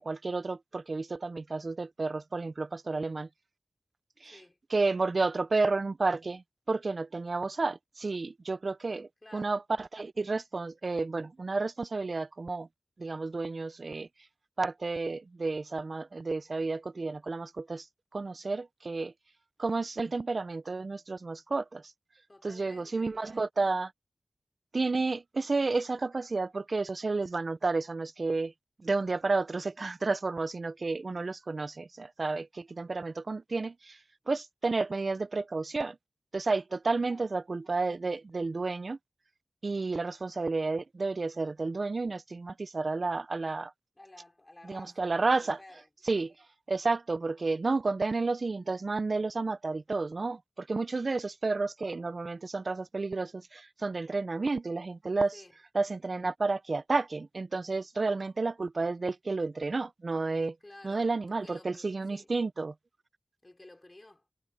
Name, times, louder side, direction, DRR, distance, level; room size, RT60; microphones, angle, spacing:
voice 1, 0.0-3.3 4.2-4.4 4.7-12.7 13.0-14.1 14.6-17.9 18.1-19.1 19.6-21.8 22.4-23.9 24.7-28.5 28.8-34.0 34.3-36.0 36.3-39.0 39.6-43.7 44.6-45.6 46.1-46.3 46.7-55.3 55.7-60.6 60.8-62.7, right 3 dB, 60° right, 0.6 m, -31 dB
voice 2, 4.2-4.6 9.2-9.6 22.3-23.2 37.0-37.3 43.9-45.9 46.1-46.3 55.3-55.6 60.6-62.3 63.4-64.3, left 2 dB, 30° left, 5.1 m, -54 dB
cardioid pair, 50°, 0 cm